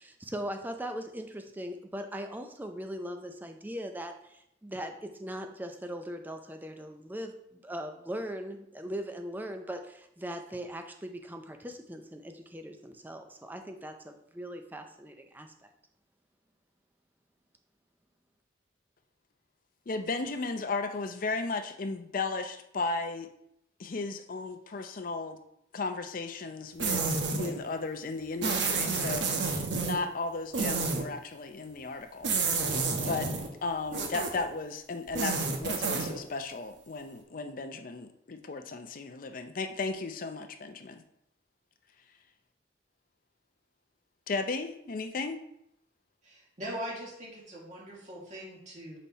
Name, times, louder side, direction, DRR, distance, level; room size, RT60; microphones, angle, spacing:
voice 1, 0.0-15.7, equal, 10° right, 5 dB, 0.5 m, -40 dB
voice 2, 19.9-23.3 23.8-25.4 25.7-32.3 33.0-33.3 33.6-41.0 44.3-45.4, left 3 dB, 50° left, 7 dB, 0.5 m, -35 dB
sound 1, 26.8-27.6 28.4-30.0 30.5-31.0 32.2-33.5 33.9-34.4 35.1-36.2, right 4 dB, 80° right, 1.0 m, -29 dB
voice 3, 46.2-49.0, equal, 40° right, -3 dB, 1.8 m, -41 dB
5.4 x 4.2 x 4.2 m, 0.76 s
head